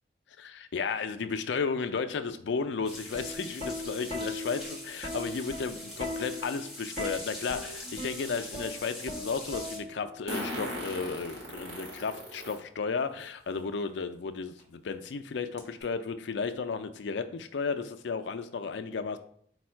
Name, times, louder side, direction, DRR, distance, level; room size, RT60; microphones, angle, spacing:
voice 1, 0.4-19.2, left 5 dB, 80° left, 9 dB, 0.4 m, -34 dB
sound 1, 2.9-9.8, left 1 dB, ahead, 0.9 m, -43 dB
Plucked string instrument, 3.1-10.2 11.3-11.6, left 1 dB, 35° right, 0.9 m, -39 dB
Fart, 7.6-7.7 10.3-12.6 13.2-13.3 14.6-14.7 15.0-15.1 15.6-15.8, equal, 70° right, 1.5 m, -37 dB
4.2 x 2.3 x 4.4 m, 0.63 s
head